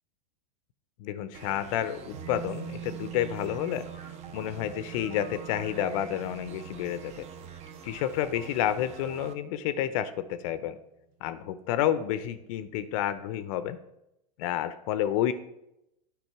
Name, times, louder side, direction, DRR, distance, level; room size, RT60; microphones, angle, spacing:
voice 1, 1.0-7.3 7.8-10.8 11.2-13.8 14.4-15.3, left 11 dB, 55° left, 13 dB, 0.5 m, -30 dB
sound 1, 1.3-9.3, right 6 dB, 30° right, 0.7 m, -47 dB
sound 2, 2.1-11.2 11.5-11.6, right 11 dB, 60° right, 1.0 m, -45 dB
9.1 x 5.0 x 4.6 m, 0.86 s
hypercardioid pair, 110°, 21 cm